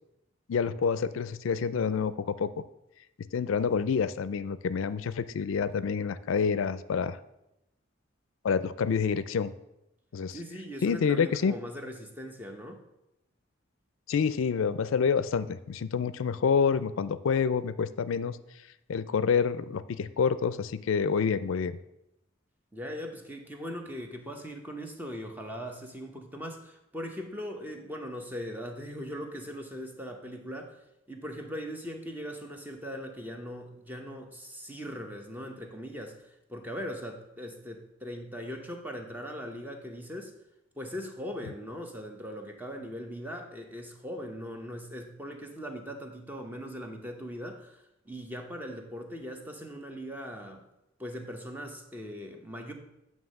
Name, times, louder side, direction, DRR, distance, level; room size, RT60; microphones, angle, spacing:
voice 1, 0.5-2.5 3.2-7.2 8.4-9.5 10.1-10.4 10.8-11.6 14.1-18.4 18.9-21.8, left 6 dB, 70° left, 15 dB, 0.4 m, -28 dB
voice 2, 10.3-12.8 22.7-30.8 31.1-40.3 40.8-50.7 51.0-52.7, equal, 10° right, 3 dB, 0.7 m, -40 dB
9.2 x 3.1 x 6.4 m, 0.88 s
head